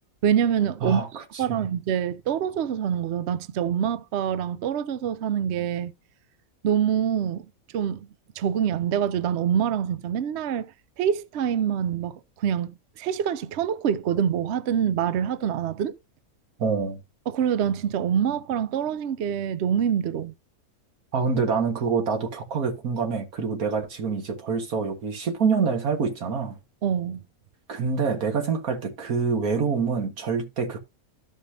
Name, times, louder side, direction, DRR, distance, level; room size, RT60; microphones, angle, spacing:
voice 1, 0.2-5.9 6.6-7.5 7.7-8.1 8.4-10.7 11.0-15.9 17.3-20.3 26.8-27.2, right 8 dB, 60° right, 0.8 m, -25 dB
voice 2, 0.8-1.2 1.5-1.7 16.6-17.0 21.1-26.6 27.7-30.8, right 5 dB, 90° right, 2.0 m, -26 dB
13.5 x 5.5 x 2.7 m
omnidirectional pair, 1.5 m